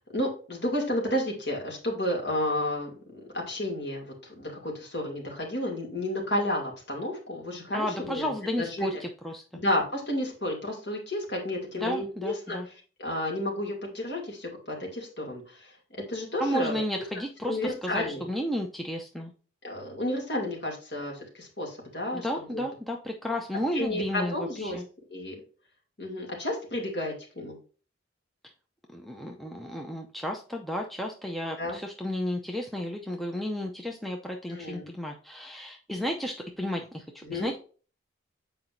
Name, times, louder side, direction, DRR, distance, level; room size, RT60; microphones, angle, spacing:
voice 1, 0.1-9.0 9.5-12.6 13.0-15.7 16.1-16.8 17.4-18.2 19.6-22.6 23.7-24.8 25.1-25.4 26.0-27.6 31.6-31.8 32.7-32.8 34.5-34.9 37.2-37.5, left 1 dB, 55° left, 0 dB, 2.5 m, -31 dB
voice 2, 7.7-9.4 11.8-12.7 16.4-19.3 22.1-24.8 28.9-37.6, equal, ahead, 1 dB, 0.6 m, -33 dB
7.6 x 4.9 x 2.6 m, 0.38 s
head